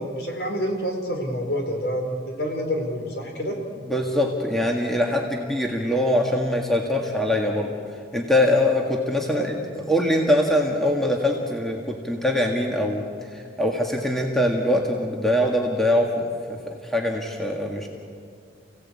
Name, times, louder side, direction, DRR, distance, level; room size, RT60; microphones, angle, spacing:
voice 1, 0.0-3.6 9.3-9.5, equal, 60° left, 3 dB, 4.1 m, -28 dB
voice 2, 3.9-7.7 8.1-13.0 13.3-17.9, left 1 dB, ahead, 0 dB, 1.7 m, -23 dB
30.0 x 17.0 x 8.6 m, 2.3 s
head